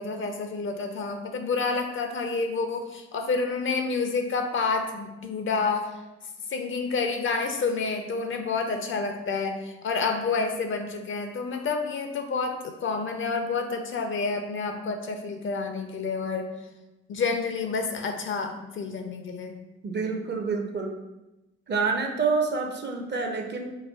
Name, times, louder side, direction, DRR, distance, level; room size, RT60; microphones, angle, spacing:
voice 1, 0.0-6.0 6.5-16.5 17.1-19.6, left 4 dB, 40° left, 5 dB, 0.4 m, -29 dB
voice 2, 19.8-20.9 21.7-23.8, right 4 dB, 35° right, 4 dB, 0.5 m, -27 dB
4.1 x 2.3 x 2.2 m, 1.0 s
hypercardioid pair, 40°, 33 cm